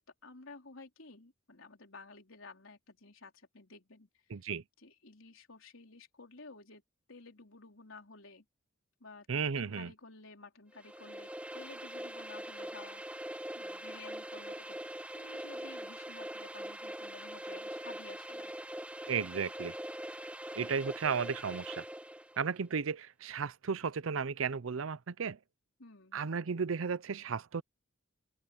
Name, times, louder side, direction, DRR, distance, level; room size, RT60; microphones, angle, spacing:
voice 1, 0.0-4.4 4.8-6.8 7.1-8.4 9.0-9.3 9.6-13.2 13.5-18.5 25.8-26.2, left 3 dB, 75° left, 4.1 m, -53 dB
voice 2, 4.3-4.6 9.3-9.9 19.1-19.7 20.6-21.8 22.4-25.4 26.1-27.6, right 6 dB, 80° right, 0.6 m, -34 dB
sound 1, 10.7-22.4, right 1 dB, 5° right, 1.1 m, -43 dB
open air
head